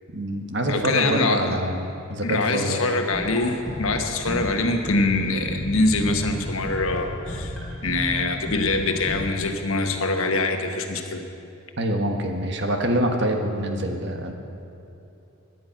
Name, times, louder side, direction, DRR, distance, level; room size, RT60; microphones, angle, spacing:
voice 1, 0.1-3.0 11.8-14.3, right 1 dB, 55° right, 3 dB, 1.4 m, -25 dB
voice 2, 0.7-1.6 2.2-7.6 7.8-11.2, left 2 dB, 75° left, 4 dB, 1.3 m, -24 dB
sound 1, 3.1-9.2, equal, ahead, 4.5 m, -33 dB
17.5 x 11.0 x 5.9 m, 2.8 s
head